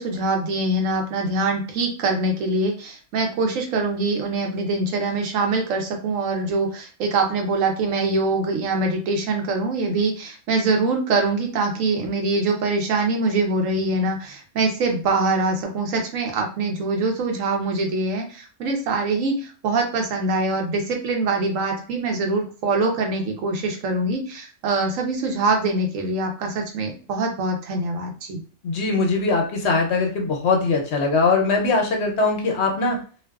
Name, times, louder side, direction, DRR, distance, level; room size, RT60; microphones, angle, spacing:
voice 1, 0.0-28.4, right 3 dB, 80° right, 2 dB, 1.1 m, -24 dB
voice 2, 28.6-33.0, left 3 dB, 65° left, 1 dB, 0.8 m, -21 dB
2.5 x 2.3 x 2.2 m, 0.39 s
omnidirectional pair, 1.3 m